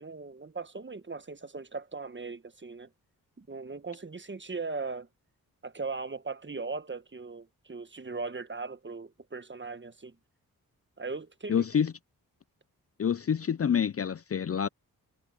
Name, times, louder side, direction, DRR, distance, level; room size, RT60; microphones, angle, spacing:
voice 1, 0.0-2.9 3.4-5.1 5.6-10.2 11.0-11.6, right 4 dB, 30° right, 1.5 m, -39 dB
voice 2, 11.5-11.9 13.0-14.7, left 8 dB, 40° left, 0.6 m, -27 dB
supercardioid pair, 45°, 37 cm